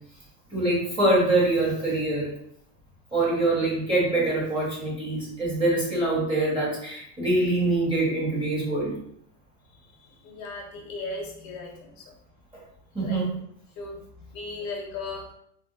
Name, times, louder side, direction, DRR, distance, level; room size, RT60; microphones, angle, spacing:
voice 1, 0.5-2.3 3.1-9.0 12.9-13.3, right 2 dB, 10° right, -7 dB, 1.3 m, -24 dB
voice 2, 10.2-11.9 13.0-13.2 13.8-14.0 14.3-15.3, left 3 dB, 60° left, 1 dB, 1.0 m, -36 dB
2.7 x 2.1 x 4.0 m, 0.68 s
supercardioid pair, 140°, 48 cm